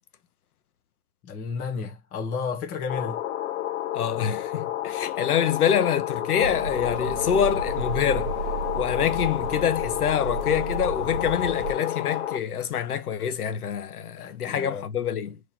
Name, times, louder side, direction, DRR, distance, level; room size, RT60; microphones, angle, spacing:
voice 1, 1.2-3.2 14.2-14.8, left 5 dB, 20° left, 0.9 m, -32 dB
sound 1, 2.9-12.4, left 12 dB, 55° left, 0.8 m, -30 dB
voice 2, 3.9-8.3 8.7-15.4, left 8 dB, 85° left, 0.8 m, -26 dB
sound 2, 6.4-11.7, right 4 dB, 35° right, 0.7 m, -33 dB
3.7 x 3.1 x 2.7 m
hypercardioid pair, 145°, 44 cm